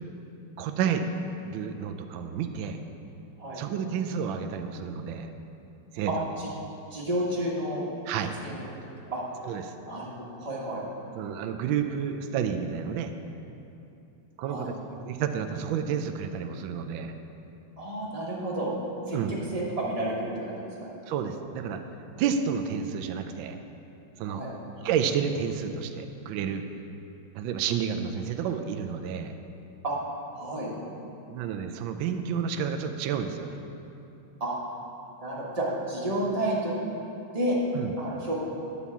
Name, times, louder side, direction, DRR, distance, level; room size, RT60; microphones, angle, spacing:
voice 1, 0.6-1.0 1.4-2.8 3.5-5.3 5.9-6.3 8.1-8.3 9.4-9.7 11.1-13.1 14.4-17.1 19.1-19.3 21.1-21.8 22.2-23.6 24.2-24.4 24.8-26.6 27.3-29.3 31.3-33.6 37.7-37.9, right 7 dB, 75° right, 6 dB, 1.2 m, -30 dB
voice 2, 6.1-6.5 6.9-7.8 8.4-8.6 9.1-9.2 9.8-10.8 14.5-14.7 17.8-18.7 19.1-19.2 19.5-20.7 24.3-24.5 29.8-30.0 30.3-30.7 34.4-34.6 35.2-36.7 37.3-37.6 38.0-38.3, right 1 dB, 20° right, -5 dB, 1.1 m, -30 dB
9.9 x 4.2 x 7.0 m, 2.8 s
omnidirectional pair, 2.3 m